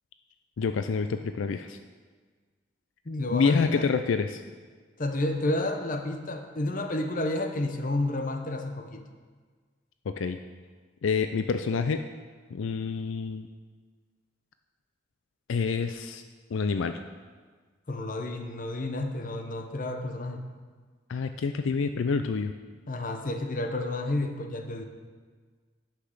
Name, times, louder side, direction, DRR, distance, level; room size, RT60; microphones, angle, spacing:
voice 1, 0.6-1.8 3.3-4.4 10.1-10.4 11.0-12.0 12.5-13.5 15.5-16.2 16.5-17.0 21.1-22.5, left 5 dB, 80° left, 9 dB, 0.4 m, -27 dB
voice 2, 3.1-3.9 5.0-9.0 17.9-20.4 22.9-24.8, left 2 dB, 40° left, 5 dB, 0.8 m, -30 dB
9.9 x 5.9 x 6.5 m, 1.5 s
head